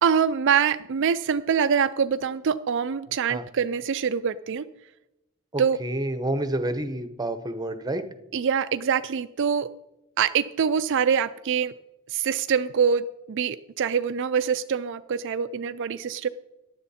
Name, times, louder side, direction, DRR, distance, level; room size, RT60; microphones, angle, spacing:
voice 1, 0.0-4.7 5.6-5.8 8.3-9.7 10.2-11.7 12.1-16.3, right 7 dB, 55° right, 12 dB, 0.4 m, -24 dB
voice 2, 5.5-8.0, right 1 dB, 20° right, 10 dB, 0.9 m, -29 dB
15.0 x 10.5 x 4.3 m, 0.94 s
head